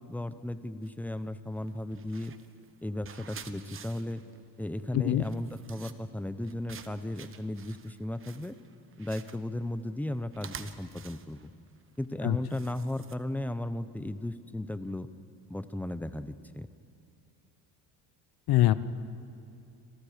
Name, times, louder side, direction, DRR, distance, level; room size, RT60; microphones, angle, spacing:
voice 1, 0.0-2.3 2.8-4.2 4.6-8.6 9.0-11.5 12.0-15.1 15.5-16.7, left 1 dB, 5° left, 11 dB, 0.8 m, -35 dB
sound 1, 0.8-1.1 1.6-13.5, right 7 dB, 35° right, 1.2 m, -50 dB
voice 2, 4.9-5.2 12.2-12.4 18.5-18.7, left 15 dB, 70° left, 14 dB, 1.0 m, -23 dB
28.0 x 27.5 x 5.1 m, 2.8 s
cardioid pair, 135°, 39 cm